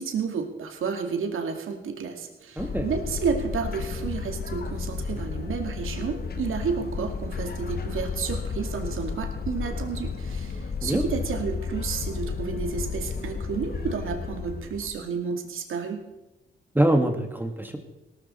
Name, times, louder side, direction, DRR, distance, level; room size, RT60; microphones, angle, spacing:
voice 1, 0.0-16.0, right 6 dB, 75° right, 4 dB, 2.3 m, -31 dB
sound 1, 2.6-14.9, left 5 dB, 50° left, 1.4 m, -32 dB
voice 2, 2.6-2.9 10.8-11.1 16.7-17.8, right 1 dB, 10° right, 5 dB, 1.7 m, -24 dB
18.0 x 13.5 x 4.4 m, 1.0 s
cardioid pair, 95°, 21 cm